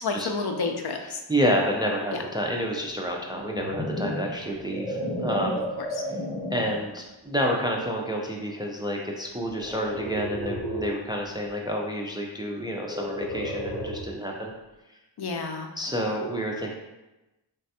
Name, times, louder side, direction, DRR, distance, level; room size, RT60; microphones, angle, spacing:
voice 1, 0.0-1.2 2.1-2.2 5.8-6.0 15.2-15.9, left 4 dB, 60° left, 4 dB, 0.5 m, -31 dB
voice 2, 1.3-5.7 6.5-14.5 15.8-16.7, equal, 10° right, -1 dB, 0.3 m, -29 dB
sound 1, 3.2-6.9 7.5-7.8 9.6-11.1 12.8-14.2, equal, 10° left, 0.8 m, -33 dB
3.2 x 2.2 x 2.8 m, 1.0 s
cardioid pair, 50°, 44 cm